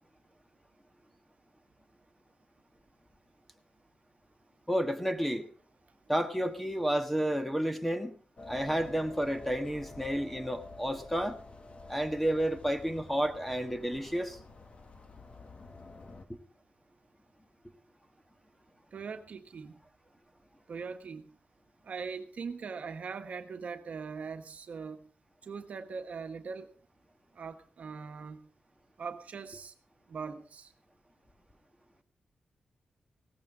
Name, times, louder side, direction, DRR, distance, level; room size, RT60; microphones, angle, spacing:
voice 1, 4.7-5.5 6.1-8.2 8.5-11.4 11.9-14.4, equal, 5° left, 7 dB, 1.4 m, -31 dB
sound 1, 8.4-16.3, left 3 dB, 45° left, 1.6 m, -49 dB
voice 2, 18.9-19.8 20.7-21.3 21.8-25.0 25.4-26.7 27.3-28.5 29.0-29.7 30.1-30.7, right 5 dB, 60° right, 6 dB, 1.3 m, -41 dB
17.0 x 14.0 x 3.7 m, 0.44 s
cardioid pair, 95°, 3 cm